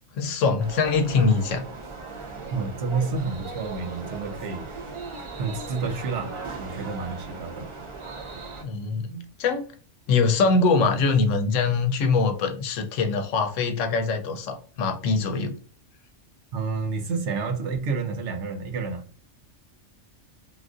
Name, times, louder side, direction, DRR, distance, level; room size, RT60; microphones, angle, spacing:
voice 1, 0.2-1.6 8.6-9.7 10.1-15.6, left 4 dB, 80° left, 0.9 m, -23 dB
sound 1, 0.6-8.6, right 4 dB, 40° right, 0.4 m, -38 dB
voice 2, 2.5-4.7 5.4-7.7 16.5-19.0, right 4 dB, 70° right, 0.9 m, -29 dB
3.4 x 2.5 x 2.4 m
omnidirectional pair, 1.3 m